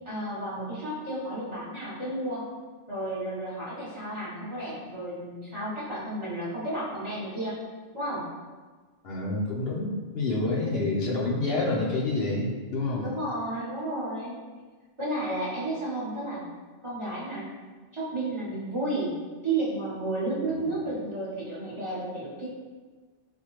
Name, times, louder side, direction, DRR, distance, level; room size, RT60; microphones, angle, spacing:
voice 1, 0.0-2.4 2.9-7.5 7.9-8.2 10.4-10.9 13.0-14.3 15.0-16.4 16.8-17.6 17.9-19.1 19.4-22.5, right 1 dB, 30° right, -9 dB, 0.8 m, -32 dB
voice 2, 9.0-13.1 20.5-20.8, left 2 dB, 60° left, -4 dB, 0.8 m, -28 dB
4.2 x 2.2 x 3.0 m, 1.4 s
omnidirectional pair, 1.2 m